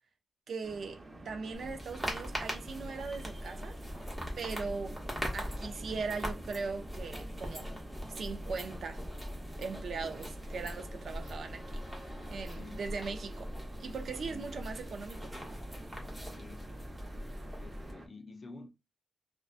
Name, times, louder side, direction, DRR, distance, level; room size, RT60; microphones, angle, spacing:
voice 1, 0.5-3.8 4.4-5.0 5.3-7.7 8.1-9.0 9.6-11.8 12.3-13.5 13.8-15.3, right 4 dB, 70° right, 0.5 m, -39 dB
sound 1, 0.6-18.1, right 2 dB, 35° right, 0.7 m, -50 dB
sound 2, 1.5-17.9, equal, 5° right, 0.8 m, -41 dB
voice 2, 12.5-12.9 14.3-14.6 16.3-16.8 17.6-18.7, left 3 dB, 45° left, 0.4 m, -50 dB
2.6 x 2.1 x 2.4 m
wide cardioid pair, 135°, 0 cm